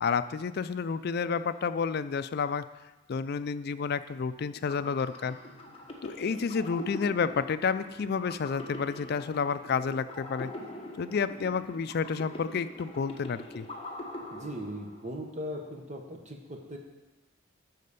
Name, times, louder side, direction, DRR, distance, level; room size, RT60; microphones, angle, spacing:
voice 1, 0.0-2.6 3.1-5.4 6.0-10.5 11.0-13.6, left 5 dB, 55° left, 12 dB, 0.4 m, -30 dB
sound 1, 4.4-15.2, left 2 dB, 30° left, 1.3 m, -44 dB
voice 2, 14.3-16.8, equal, 35° right, 2 dB, 1.3 m, -39 dB
12.0 x 4.2 x 6.7 m, 1.1 s
head